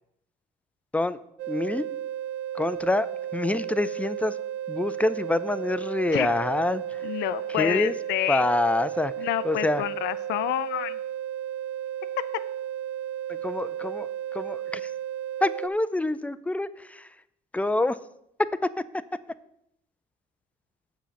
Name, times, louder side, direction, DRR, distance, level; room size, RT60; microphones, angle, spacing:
sound 1, 1.4-15.7, right 10 dB, 80° right, 0.5 m, -34 dB
voice 1, 1.5-1.8 2.5-3.1 3.3-4.4 4.7-7.1 7.5-8.0 8.3-9.1 9.4-9.8 13.3-14.9 15.4-17.1 17.5-18.0 18.6-18.8, left 2 dB, 10° left, 14 dB, 0.4 m, -26 dB
voice 2, 7.0-8.5 9.2-11.0, left 14 dB, 90° left, 14 dB, 0.5 m, -28 dB
7.7 x 5.0 x 6.9 m, 0.77 s
cardioid pair, 110°, 17 cm